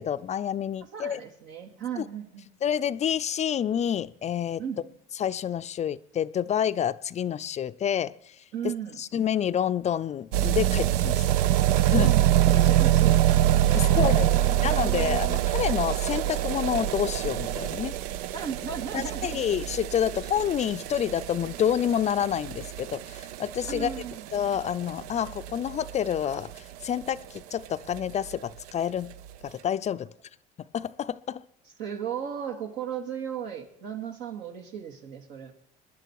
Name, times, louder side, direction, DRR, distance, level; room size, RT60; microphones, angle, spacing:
voice 1, 0.0-1.2 2.0-2.1 2.6-4.6 5.2-8.3 8.6-8.7 9.0-11.2 11.9-12.1 13.7-14.3 14.6-18.0 18.9-23.9 24.3-29.2 29.4-30.1 30.7-31.4, left 9 dB, 35° left, 0.5 m, -28 dB
voice 2, 0.9-2.5 4.6-4.8 8.5-9.0 11.9-13.2 13.7-15.4 18.3-19.5 23.7-24.2 31.8-35.5, right 8 dB, 70° right, 2.5 m, -35 dB
sound 1, 10.3-27.1 27.4-27.5 27.7-27.8 28.0-28.1 28.3-28.4 29.1-29.2, right 13 dB, 90° right, 0.5 m, -25 dB
21.0 x 10.5 x 4.7 m
supercardioid pair, 90°, 19 cm